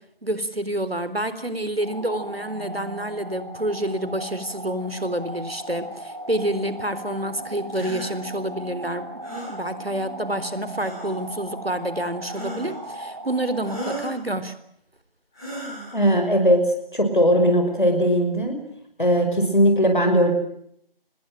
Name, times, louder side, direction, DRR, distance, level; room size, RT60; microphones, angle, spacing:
voice 1, 0.2-9.1 9.5-14.5, right 1 dB, 85° right, 13 dB, 3.9 m, -28 dB
sound 1, 1.8-14.0, right 1 dB, 25° right, 3.1 m, -37 dB
sound 2, 7.7-8.1 9.2-9.5 10.7-11.2 12.3-12.8 13.6-14.1 15.3-16.0, right 1 dB, 5° left, 6.5 m, -35 dB
voice 2, 15.9-16.6 16.9-18.6 19.0-20.3, equal, 55° left, 4 dB, 5.8 m, -19 dB
26.5 x 21.0 x 9.2 m, 0.72 s
figure-of-eight pair, 175°, 29 cm